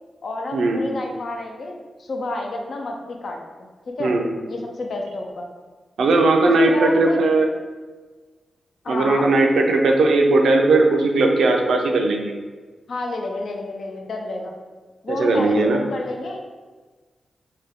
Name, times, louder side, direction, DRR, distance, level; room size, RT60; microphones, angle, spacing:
voice 1, 0.2-4.1 4.5-5.4 6.6-7.2 8.8-9.3 12.9-14.6 15.0-16.4, left 2 dB, 70° left, 2 dB, 0.5 m, -30 dB
voice 2, 6.0-7.5 8.9-12.3 15.1-15.8, right 2 dB, 85° right, 2 dB, 0.4 m, -18 dB
3.3 x 2.2 x 3.5 m, 1.4 s
cardioid pair, 65°, 0 cm